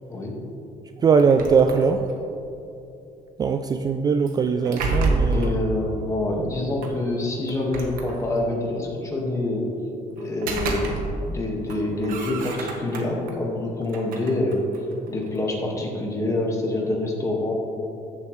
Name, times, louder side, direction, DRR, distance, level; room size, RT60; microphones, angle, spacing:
voice 1, 1.0-2.1 3.4-5.5, right 5 dB, 30° right, 7 dB, 0.3 m, -20 dB
sound 1, 1.2-2.3 4.3-5.6 6.8-6.9 7.5-8.6 10.2-11.4 11.7-13.3 13.8-15.4, right 3 dB, 85° right, 1.3 m, -29 dB
voice 2, 5.3-9.7 10.1-14.6 15.1-17.5, left 2 dB, 20° left, -1 dB, 1.6 m, -26 dB
14.5 x 7.4 x 3.2 m, 2.8 s
cardioid pair, 135°, 14 cm